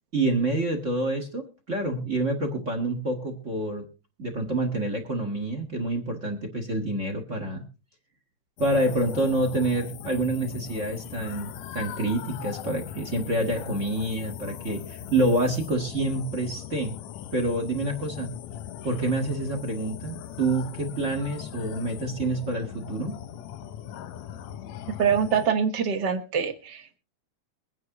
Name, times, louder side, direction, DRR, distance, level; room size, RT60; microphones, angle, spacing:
voice 1, 0.1-3.8 4.2-7.6 8.6-17.0 17.3-18.3 18.8-23.2, right 2 dB, 35° right, 5 dB, 1.2 m, -27 dB
sound 1, 8.6-25.5, left 10 dB, 75° left, 1.7 m, -39 dB
voice 2, 24.9-27.0, right 7 dB, 60° right, 10 dB, 1.1 m, -25 dB
23.0 x 9.7 x 2.9 m, 0.32 s
omnidirectional pair, 3.7 m